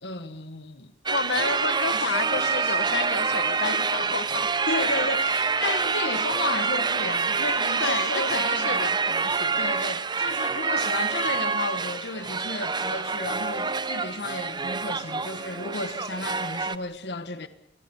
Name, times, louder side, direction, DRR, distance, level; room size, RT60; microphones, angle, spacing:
voice 1, 0.0-0.9 1.9-2.8 4.7-8.9 9.6-17.5, left 3 dB, 70° left, 1.5 m, -33 dB
voice 2, 1.1-4.5 7.8-9.7, left 4 dB, 90° left, 1.5 m, -31 dB
sound 1, 1.1-16.8, right 5 dB, 25° right, 0.9 m, -26 dB
28.5 x 21.5 x 7.1 m
head